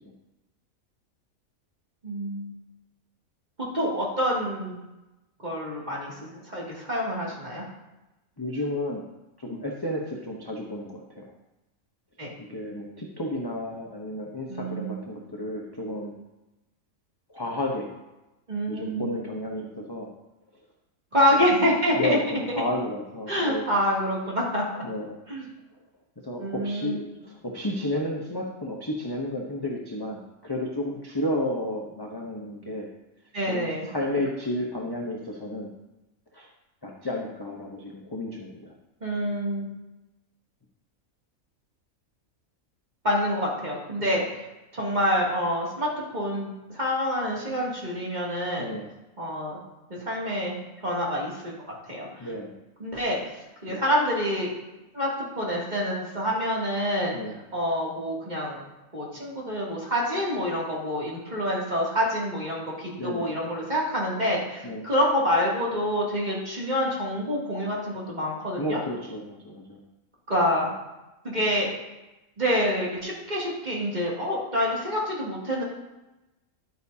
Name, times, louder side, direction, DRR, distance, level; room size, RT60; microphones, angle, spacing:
voice 1, 2.0-2.4 3.6-4.8 5.4-6.1 6.5-7.6 12.2-12.3 14.5-15.0 18.5-19.1 21.1-22.4 23.3-24.8 25.3-25.5 26.4-27.0 33.3-33.9 39.0-39.7 43.0-44.4 44.7-48.7 49.2-49.6 49.9-50.6 50.8-51.5 51.9-52.3 52.8-53.2 53.6-54.5 54.9-57.1 57.5-58.6 58.9-68.8 70.3-70.7 71.2-71.7 72.4-75.6, equal, 30° right, -5 dB, 2.7 m, -27 dB
voice 2, 8.4-9.1 9.4-11.2 12.5-16.1 17.3-17.9 18.7-20.1 21.9-23.6 24.8-25.2 26.2-32.9 33.5-35.7 36.3-36.5 36.8-38.7 44.0-44.2 48.6-48.9 52.2-52.5 53.7-53.8 57.1-57.4 63.0-63.3 64.6-64.9 68.6-69.8, left 1 dB, 20° left, -2 dB, 0.9 m, -32 dB
11.5 x 8.8 x 2.8 m, 1.0 s
omnidirectional pair, 1.5 m